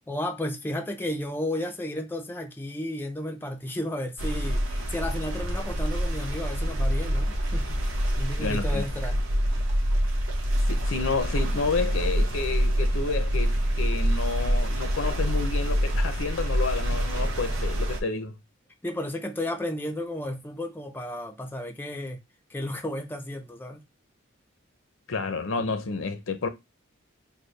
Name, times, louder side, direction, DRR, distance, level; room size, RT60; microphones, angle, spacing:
voice 1, 0.1-7.8 8.2-9.2 18.8-22.2 22.5-23.8, left 1 dB, 10° left, 0.5 m, -33 dB
sound 1, 4.2-18.0, equal, 85° right, 1.0 m, -26 dB
voice 2, 8.4-8.8 10.7-18.3 25.1-26.5, left 4 dB, 75° left, 0.7 m, -30 dB
4.2 x 2.2 x 3.1 m
head